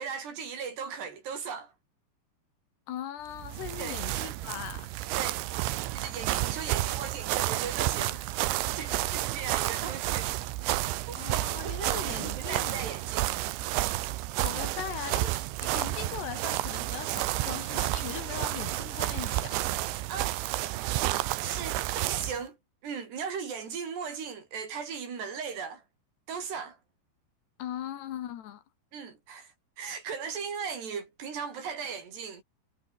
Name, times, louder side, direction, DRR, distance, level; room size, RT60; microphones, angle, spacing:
voice 1, 0.0-1.7 3.8-4.0 5.2-5.4 5.9-10.3 10.6-10.7 11.1-11.2 11.6-13.4 20.1-20.3 21.4-21.8 22.1-22.6 22.8-25.8 26.3-26.8 28.9-32.4, right 6 dB, 65° right, 6.6 m, -38 dB
voice 2, 2.9-4.9 8.9-9.1 9.6-9.9 11.1-12.8 14.4-15.4 15.6-19.6 27.6-28.6, left 11 dB, 70° left, 3.7 m, -39 dB
sound 1, 3.3-22.4, right 16 dB, 85° right, 3.5 m, -31 dB
omnidirectional pair, 5.3 m